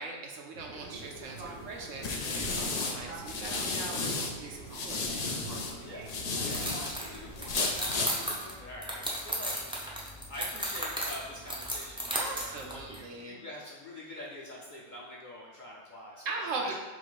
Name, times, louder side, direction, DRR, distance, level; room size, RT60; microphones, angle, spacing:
voice 1, 0.0-2.1 2.3-5.3 12.1-13.4 16.2-16.7, right 3 dB, 85° right, 0 dB, 1.1 m, -40 dB
Fixed-wing aircraft airplane, 0.5-8.4, right 3 dB, 55° right, 0.8 m, -45 dB
sound 1, 1.1-4.3 4.7-6.9 7.4-8.1, left 3 dB, 75° left, 0.3 m, -33 dB
voice 2, 5.8-6.1 6.4-16.7, left 1 dB, 45° left, -4 dB, 0.7 m, -45 dB
sound 2, 6.5-13.0, equal, 10° right, 0.3 m, -36 dB
4.0 x 2.5 x 4.7 m, 1.3 s
omnidirectional pair, 1.3 m